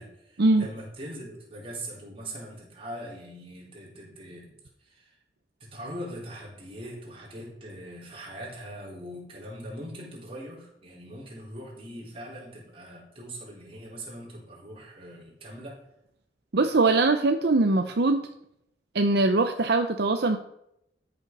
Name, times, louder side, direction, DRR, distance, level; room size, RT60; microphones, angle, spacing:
voice 1, 0.0-4.5 4.8-5.1 5.6-15.8, equal, 35° right, -4 dB, 4.1 m, -41 dB
voice 2, 16.5-18.2 18.9-20.4, right 3 dB, 65° right, 6 dB, 0.7 m, -22 dB
13.0 x 6.9 x 5.4 m, 0.78 s
head